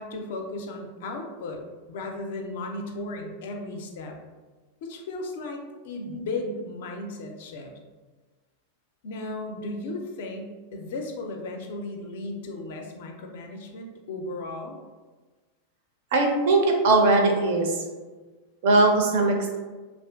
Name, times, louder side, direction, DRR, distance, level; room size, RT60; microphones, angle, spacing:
voice 1, 0.0-4.2 4.8-7.7 9.0-14.8, left 2 dB, 55° left, 3 dB, 0.4 m, -35 dB
voice 2, 16.1-17.8 18.6-19.6, right 2 dB, 55° right, 2 dB, 0.4 m, -20 dB
2.4 x 2.3 x 2.2 m, 1.3 s
figure-of-eight pair, 90°, 0 cm